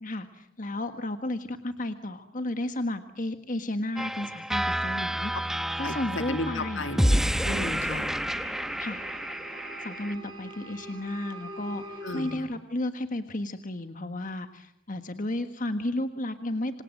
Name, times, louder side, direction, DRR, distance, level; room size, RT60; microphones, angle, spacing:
voice 1, 0.0-6.9 8.8-9.0 9.8-16.8, left 1 dB, 40° left, 8 dB, 1.5 m, -33 dB
sound 1, 4.0-10.1, equal, ahead, 1.0 m, -29 dB
sound 2, 5.6-12.4, right 1 dB, 25° right, 6.9 m, -45 dB
voice 2, 5.8-8.1 12.0-12.5, left 2 dB, 70° left, 8 dB, 2.4 m, -34 dB
27.5 x 27.0 x 7.7 m, 0.78 s
head